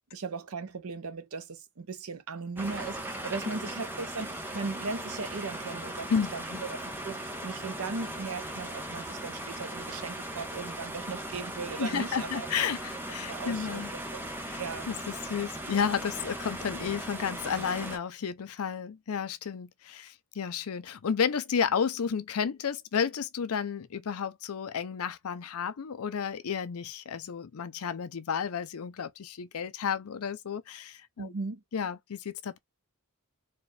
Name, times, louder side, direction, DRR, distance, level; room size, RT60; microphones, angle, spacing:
voice 1, 0.1-12.5 13.3-14.2 14.6-14.9 31.2-31.6, right 4 dB, 65° right, 0.7 m, -38 dB
sound 1, 2.6-18.0, right 1 dB, 10° right, 0.8 m, -38 dB
voice 2, 6.1-6.6 11.8-13.9 14.5-14.6 14.9-31.3 31.7-32.6, left 7 dB, 70° left, 0.5 m, -32 dB
4.3 x 2.3 x 3.2 m
head